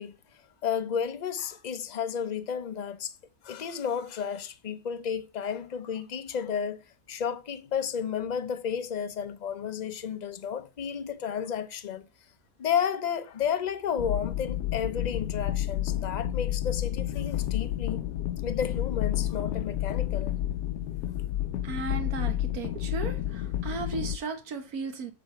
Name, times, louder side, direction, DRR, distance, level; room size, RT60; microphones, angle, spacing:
voice 1, 0.0-3.1 3.4-6.8 7.1-12.1 12.6-18.0 18.4-20.3, left 7 dB, 45° left, 0.6 m, -32 dB
sound 1, 14.0-24.2, left 12 dB, 85° left, 1.1 m, -30 dB
voice 2, 21.6-25.1, right 4 dB, 70° right, 1.7 m, -36 dB
8.0 x 4.0 x 6.7 m
omnidirectional pair, 1.6 m